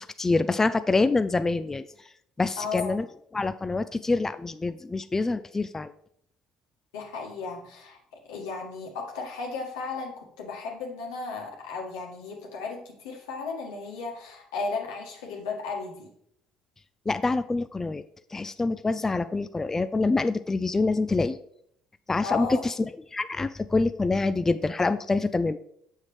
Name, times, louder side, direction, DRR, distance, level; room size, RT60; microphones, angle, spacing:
voice 1, 0.0-1.8 2.4-3.0 3.3-5.9 17.1-18.0 18.3-21.4 22.1-22.7 23.1-25.6, left 3 dB, 20° left, 12 dB, 0.4 m, -26 dB
voice 2, 2.6-3.0 6.9-8.0 8.3-16.1 22.2-22.7, left 4 dB, 90° left, 0 dB, 1.6 m, -35 dB
7.2 x 6.3 x 3.2 m, 0.69 s
supercardioid pair, 70°, 2 cm